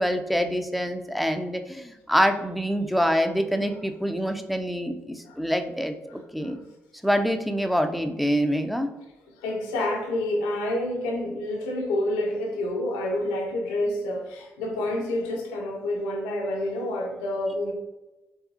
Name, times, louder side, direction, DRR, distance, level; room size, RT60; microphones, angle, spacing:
voice 1, 0.0-6.6 7.0-8.9, equal, ahead, 6 dB, 0.5 m, -25 dB
voice 2, 6.1-6.6 9.4-17.7, left 1 dB, 85° left, 0 dB, 0.7 m, -28 dB
4.7 x 3.5 x 2.7 m, 1.0 s
hypercardioid pair, 45°, 6 cm